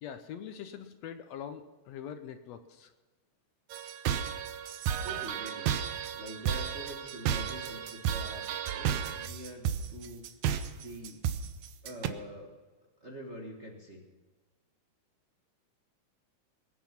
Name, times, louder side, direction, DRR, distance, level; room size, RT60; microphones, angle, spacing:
voice 1, 0.0-2.9, left 8 dB, 70° left, 9 dB, 1.8 m, -43 dB
sound 1, 3.7-12.1, right 9 dB, 80° right, 2.3 m, -33 dB
voice 2, 4.9-5.7 6.1-10.3 10.8-11.2 11.8-12.5 13.0-14.0, equal, 35° right, 0 dB, 1.3 m, -45 dB
21.0 x 9.2 x 5.9 m, 1.3 s
omnidirectional pair, 3.4 m